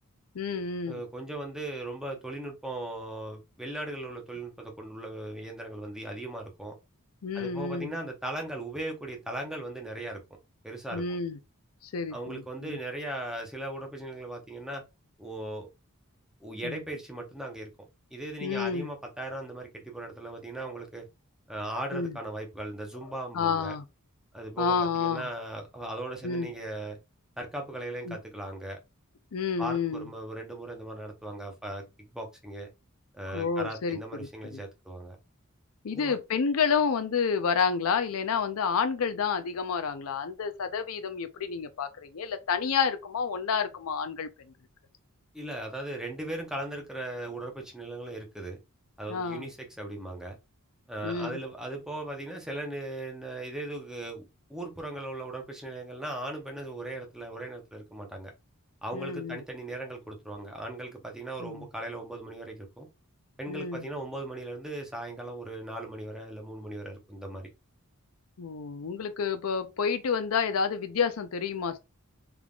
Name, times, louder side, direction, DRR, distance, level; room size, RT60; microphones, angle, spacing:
voice 1, 0.3-1.0 7.2-7.9 10.9-11.4 11.8-12.8 16.6-16.8 18.4-18.9 21.9-22.2 23.3-23.8 24.6-25.3 25.8-25.9 26.2-26.5 28.1-28.2 29.3-30.1 33.3-34.6 35.8-44.5 49.1-49.5 51.0-51.4 58.9-59.4 61.4-61.7 63.5-63.9 68.4-71.8, left 6 dB, 70° left, 0.5 m, -30 dB
voice 2, 0.9-6.7 7.3-10.2 10.6-11.0 12.1-14.8 15.2-15.7 16.4-17.7 18.1-21.1 21.5-23.8 24.3-27.0 27.4-28.8 29.6-32.7 33.1-35.2 35.9-36.2 45.3-48.6 49.0-50.4 50.9-58.3 58.8-62.9 63.4-67.5, right 1 dB, 5° right, 0.8 m, -38 dB
3.5 x 3.5 x 2.4 m
head